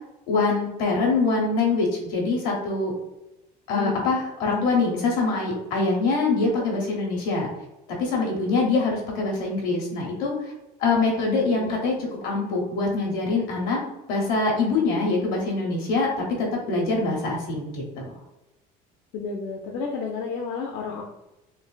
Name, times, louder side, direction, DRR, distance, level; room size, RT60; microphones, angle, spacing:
voice 1, 0.3-2.9 3.7-7.5 7.9-10.3 10.8-13.8 14.1-18.1, left 3 dB, 90° left, -2 dB, 1.0 m, -24 dB
voice 2, 19.1-21.0, left 5 dB, 70° left, 0 dB, 0.5 m, -31 dB
3.2 x 2.4 x 2.3 m, 0.96 s
supercardioid pair, 105°, 19 cm